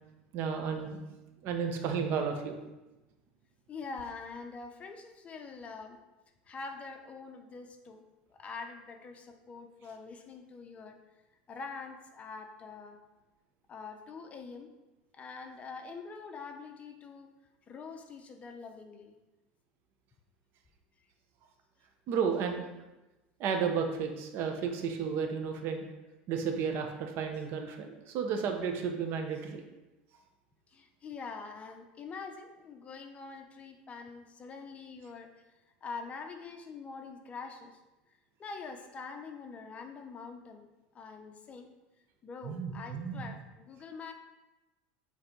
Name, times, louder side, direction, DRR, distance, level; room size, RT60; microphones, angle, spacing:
voice 1, 0.3-1.0 1.4-2.6 22.1-22.7 23.4-25.8 26.3-29.6 42.4-43.2, right 6 dB, 55° right, 4 dB, 1.1 m, -32 dB
voice 2, 3.7-6.0 6.5-8.0 8.3-11.0 11.5-13.0 13.7-14.7 15.1-17.3 17.7-19.2 30.7-35.3 35.8-37.8 38.4-40.7 40.9-41.7 42.2-44.1, left 4 dB, 30° left, 5 dB, 0.8 m, -44 dB
7.9 x 3.4 x 4.6 m, 1.0 s
supercardioid pair, 115°, 5 cm